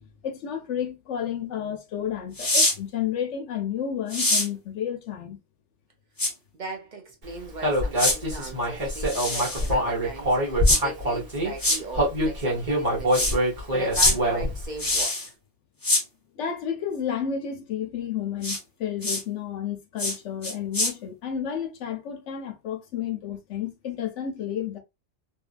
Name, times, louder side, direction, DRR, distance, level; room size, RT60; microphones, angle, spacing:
voice 1, 0.0-5.4 16.3-24.8, left 8 dB, 80° left, 1.0 m, -31 dB
sound 1, 2.4-2.7 4.1-4.5 6.2-6.3 8.0-8.2 9.0-9.7 10.6-10.8 11.6-11.8 13.1-13.3 13.9-14.1 14.8-15.3 15.8-16.0 18.4-18.6 19.0-19.2 20.0-20.2 20.4-20.9, left 1 dB, 20° left, 0.7 m, -23 dB
voice 2, 6.5-15.2, right 2 dB, 50° right, 0.6 m, -39 dB
Human voice, 7.6-11.5 11.9-14.7, equal, 35° right, 1.2 m, -24 dB
2.7 x 2.6 x 2.4 m
omnidirectional pair, 1.2 m